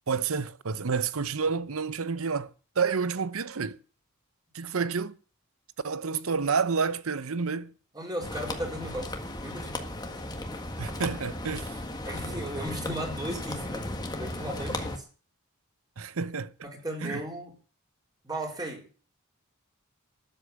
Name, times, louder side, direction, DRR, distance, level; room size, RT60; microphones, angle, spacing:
voice 1, 0.1-2.5 2.8-3.8 4.5-5.2 5.8-7.7 10.8-11.7 16.0-16.7 17.0-17.2, right 5 dB, 70° right, 0.8 m, -29 dB
voice 2, 7.9-9.1 9.4-9.8 12.0-13.9 14.1-15.1 16.6-17.5 18.2-18.9, right 1 dB, 20° right, 4.3 m, -36 dB
sound 1, 8.2-15.0, left 1 dB, 20° left, 1.6 m, -35 dB
13.0 x 8.2 x 8.7 m
head